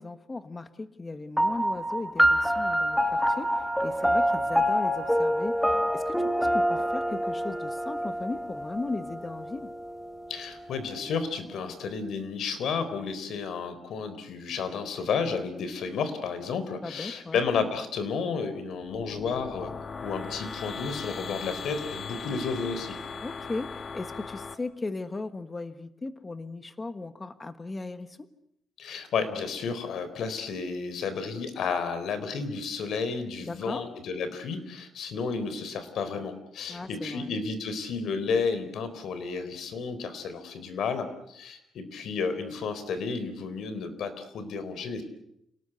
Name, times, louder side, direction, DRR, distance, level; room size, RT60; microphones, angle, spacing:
voice 1, 0.0-9.7 16.8-17.4 23.2-28.3 33.4-33.9 36.7-37.4, left 3 dB, 20° left, 10 dB, 1.5 m, -37 dB
sound 1, 1.4-10.2, equal, ahead, 1.6 m, -26 dB
voice 2, 10.3-19.7 20.0-23.0 28.8-45.0, left 5 dB, 70° left, 11 dB, 4.1 m, -32 dB
sound 2, 18.8-24.5, left 5 dB, 40° left, 1.7 m, -38 dB
29.0 x 19.0 x 8.1 m, 0.79 s
cardioid pair, 130°, 0 cm